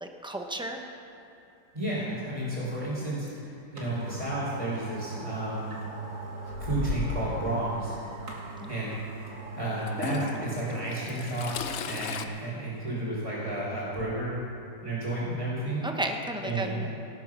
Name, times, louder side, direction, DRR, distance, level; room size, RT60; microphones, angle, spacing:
voice 1, 0.0-0.8 8.6-8.7 15.8-16.9, right 1 dB, 5° right, 3 dB, 0.7 m, -33 dB
voice 2, 1.7-5.7 6.6-7.9 8.7-9.0 9.6-14.4 14.8-15.8 16.4-16.9, right 1 dB, 20° right, -10 dB, 3.8 m, -32 dB
sound 1, 3.3-3.4 3.8-11.0 11.4-11.5, right 3 dB, 50° right, 2.3 m, -40 dB
Toilet flush / Trickle dribble, 6.5-7.4 8.5-8.6 9.9-12.3, left 6 dB, 60° left, 0.8 m, -35 dB
18.0 x 9.2 x 6.1 m, 2.8 s
omnidirectional pair, 1.8 m